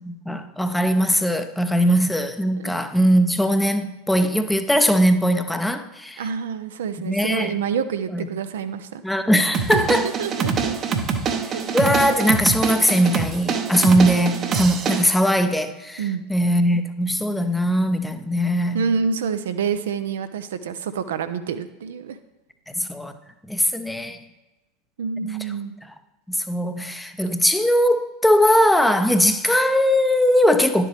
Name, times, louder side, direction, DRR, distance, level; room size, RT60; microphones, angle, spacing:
voice 1, 0.0-6.2 7.0-7.5 8.1-8.2 9.0-10.1 11.5-16.0 16.3-18.9 22.7-23.1 23.5-24.2 26.5-30.9, equal, 5° left, 0.6 m, -20 dB
voice 2, 6.2-9.0 9.7-10.7 11.5-11.6 16.0-16.2 18.7-22.2 25.0-25.7, right 6 dB, 65° right, 0.5 m, -27 dB
sound 1, 9.5-15.0, right 5 dB, 30° right, 0.8 m, -25 dB
11.0 x 7.5 x 3.3 m
figure-of-eight pair, 80°, 0 cm